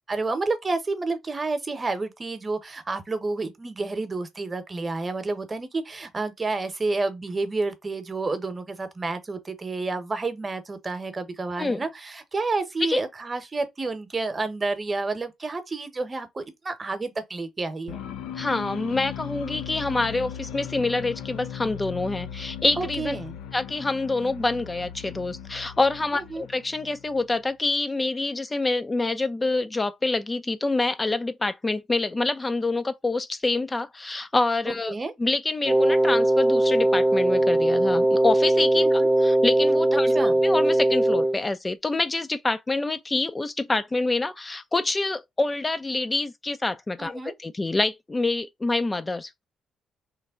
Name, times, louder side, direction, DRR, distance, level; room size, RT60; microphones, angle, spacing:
voice 1, 0.1-18.0 22.8-23.4 26.1-26.4 34.6-35.1 39.0-39.1 40.1-40.3 47.0-47.3, right 3 dB, 35° right, 0.9 m, -30 dB
sound 1, 17.9-27.5, left 10 dB, 80° left, 0.4 m, -38 dB
voice 2, 18.3-23.2 23.5-49.4, left 2 dB, 25° left, 0.4 m, -26 dB
Wind instrument woodwind instrument, 35.6-41.4, right 1 dB, 5° right, 0.8 m, -20 dB
3.2 x 2.1 x 3.6 m
supercardioid pair, 60°, 0 cm